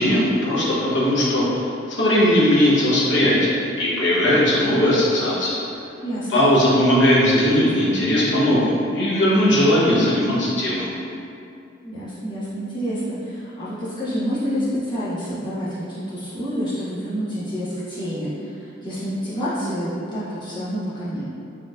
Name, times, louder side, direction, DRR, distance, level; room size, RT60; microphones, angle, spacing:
voice 1, 0.0-1.4 1.9-5.6 6.3-10.9, left 1 dB, 65° left, -6 dB, 0.9 m, -18 dB
voice 2, 5.7-6.5 11.8-21.2, equal, 25° left, -12 dB, 1.1 m, -28 dB
4.4 x 3.0 x 2.4 m, 2.5 s
head